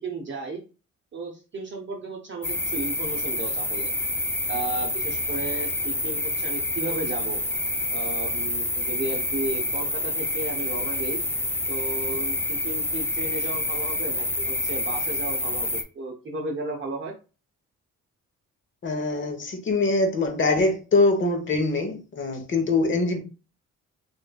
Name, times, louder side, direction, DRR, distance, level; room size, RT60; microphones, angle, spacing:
voice 1, 0.0-0.6 1.1-3.9 4.5-7.4 7.9-11.2 11.7-17.1, right 3 dB, 40° right, 0.7 m, -34 dB
sound 1, 2.4-15.8, left 1 dB, 10° left, 0.4 m, -28 dB
voice 2, 18.8-23.2, left 3 dB, 40° left, 1.0 m, -23 dB
3.5 x 3.1 x 2.2 m
cardioid pair, 90°, 30 cm